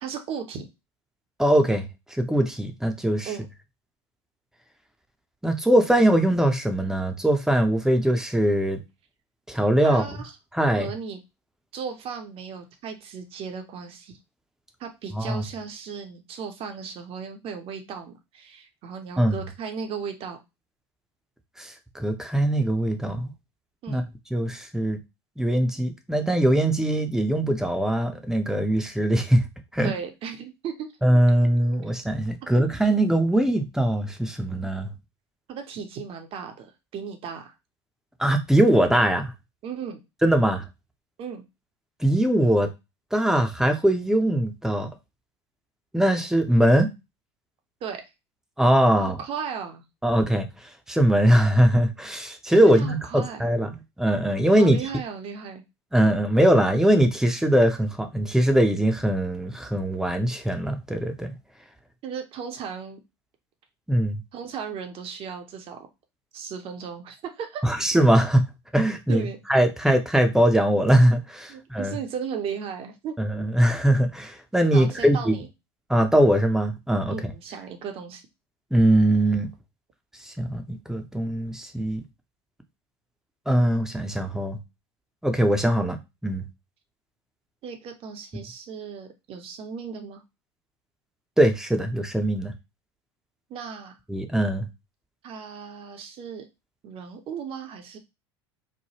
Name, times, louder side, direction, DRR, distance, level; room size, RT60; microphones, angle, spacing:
voice 1, 0.0-0.7 3.2-3.4 9.8-10.3 10.8-11.2 11.7-14.2 14.8-20.4 23.8-24.1 29.8-30.9 32.4-32.5 35.5-37.5 39.6-40.0 41.2-41.5 47.8-48.0 49.0-49.8 52.6-53.4 54.5-55.6 62.0-63.0 64.3-65.8 66.3-67.6 69.1-69.4 71.5-73.2 74.7-75.5 77.1-78.2 87.6-90.2 93.5-94.0 95.2-96.4 96.8-98.0, right 6 dB, 40° right, 0.7 m, -36 dB
voice 2, 1.4-1.9 2.1-3.3 5.4-8.8 9.5-10.0 10.5-10.9 15.1-15.4 19.2-19.4 21.6-23.3 23.9-24.0 24.3-25.0 25.4-29.5 29.7-29.9 31.0-34.9 38.2-39.3 40.2-40.6 42.0-42.7 43.1-44.9 45.9-46.9 48.6-49.2 50.0-50.5 50.9-53.7 54.0-54.8 55.9-61.3 63.9-64.2 67.6-68.4 68.7-71.9 73.2-75.3 75.9-77.2 78.7-79.5 80.2-82.0 83.5-84.6 85.2-86.0 86.2-86.4 91.4-92.5 94.1-94.7, right 1 dB, 5° right, 0.6 m, -21 dB
3.3 x 2.1 x 2.8 m
hypercardioid pair, 80°, 14 cm